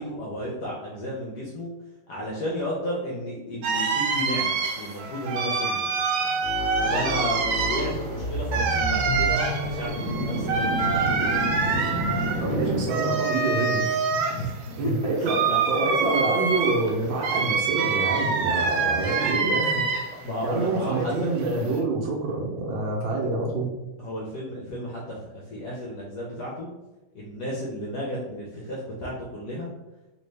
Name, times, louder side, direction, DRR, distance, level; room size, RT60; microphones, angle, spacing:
voice 1, 0.0-1.7 2.1-5.8 6.7-11.5 12.5-12.6 14.3-14.6 14.8-15.9 20.2-21.3 24.0-26.7 27.1-29.7, equal, 70° left, -4 dB, 0.9 m, -33 dB
sound 1, 3.6-20.3 20.6-21.8, right 5 dB, 90° right, 1.5 m, -26 dB
sound 2, 6.4-13.4, equal, 35° left, 0.7 m, -30 dB
voice 2, 12.4-14.0 14.8-15.4 15.7-20.0 20.4-23.7, right 3 dB, 70° right, -1 dB, 1.3 m, -27 dB
3.4 x 2.7 x 3.2 m, 1.1 s
omnidirectional pair, 2.4 m